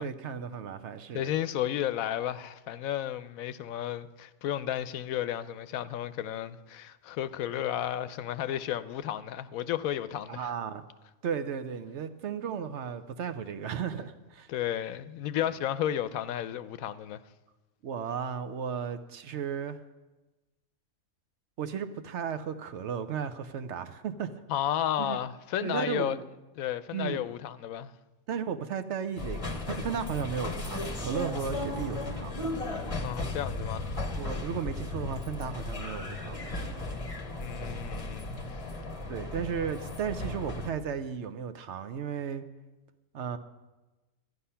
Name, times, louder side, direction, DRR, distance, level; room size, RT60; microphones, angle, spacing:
voice 1, 0.0-1.4 10.3-10.8 11.2-14.5 15.4-15.5 17.8-19.8 21.6-24.3 25.0-25.2 25.6-26.2 26.9-27.3 28.3-32.4 34.2-36.5 39.1-42.4 43.1-43.4, right 7 dB, 60° right, 0.9 m, -35 dB
voice 2, 1.1-10.5 14.5-17.2 24.5-26.2 26.6-27.9 33.0-33.9 37.4-38.4, left 11 dB, 90° left, 1.0 m, -33 dB
sound 1, 29.2-40.7, left 2 dB, 30° left, 0.9 m, -35 dB
13.0 x 9.7 x 5.6 m
omnidirectional pair, 1.4 m